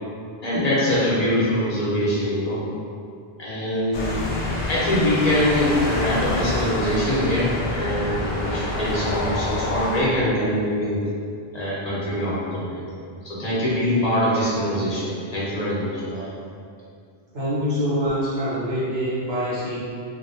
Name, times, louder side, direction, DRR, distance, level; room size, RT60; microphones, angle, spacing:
voice 1, 0.4-2.6 3.4-4.1 4.7-11.0 11.5-12.8 13.2-16.2, left 1 dB, 40° left, -8 dB, 0.9 m, -23 dB
sound 1, 3.9-10.0, left 2 dB, 75° left, 0.8 m, -27 dB
voice 2, 17.3-19.8, equal, 80° right, -10 dB, 1.3 m, -25 dB
2.9 x 2.7 x 2.6 m, 2.4 s
omnidirectional pair, 1.0 m